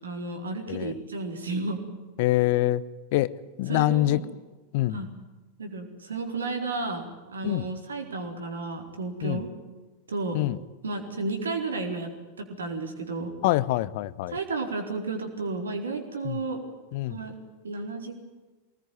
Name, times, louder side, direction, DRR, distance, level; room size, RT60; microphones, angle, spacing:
voice 1, 0.0-1.8 3.7-4.2 4.9-5.1 5.6-9.5 10.1-10.4 10.8-12.1 12.4-13.3 14.3-16.6 17.1-17.3 17.6-18.2, right 3 dB, 70° right, 4 dB, 4.3 m, -32 dB
voice 2, 2.2-2.8 3.1-3.3 3.6-4.2 4.7-5.0 7.4-7.7 9.2-9.4 10.3-10.6 13.4-14.4 16.2-16.4 16.9-17.2, left 16 dB, 50° left, 18 dB, 0.9 m, -25 dB
23.5 x 19.5 x 9.4 m, 1.2 s
figure-of-eight pair, 90°, 0 cm